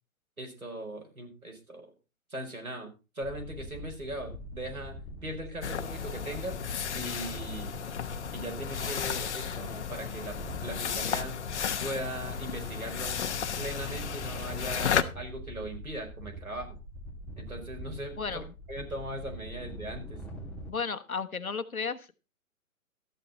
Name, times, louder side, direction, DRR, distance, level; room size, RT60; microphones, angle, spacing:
voice 1, 0.4-1.9 2.3-4.9 5.2-6.6 6.9-7.8 8.3-11.3 11.8-13.2 13.6-16.8 17.4-20.2, right 1 dB, 90° right, 2 dB, 4.9 m, -39 dB
sound 1, 3.2-20.7, equal, 5° left, 1.5 m, -43 dB
sound 2, 5.6-15.0, left 8 dB, 55° left, 1.1 m, -34 dB
voice 2, 18.2-18.5 20.7-22.1, left 5 dB, 85° left, 10 dB, 1.3 m, -34 dB
13.0 x 9.8 x 4.1 m, 0.30 s
figure-of-eight pair, 135°, 41 cm